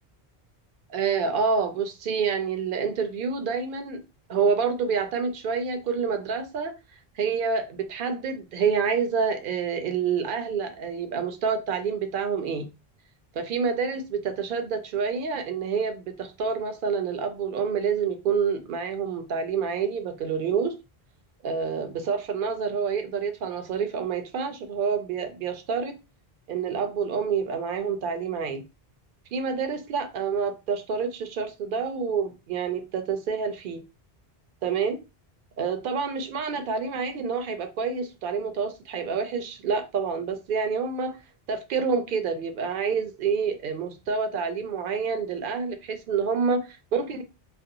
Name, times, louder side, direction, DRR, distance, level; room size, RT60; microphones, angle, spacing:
voice 1, 0.9-4.0 4.3-6.7 7.2-12.7 13.3-20.7 21.4-25.9 26.5-28.6 29.3-33.8 34.6-35.0 35.6-41.1 41.5-47.2, right 5 dB, 60° right, 0.7 m, -28 dB
2.5 x 2.1 x 2.6 m
omnidirectional pair, 1.0 m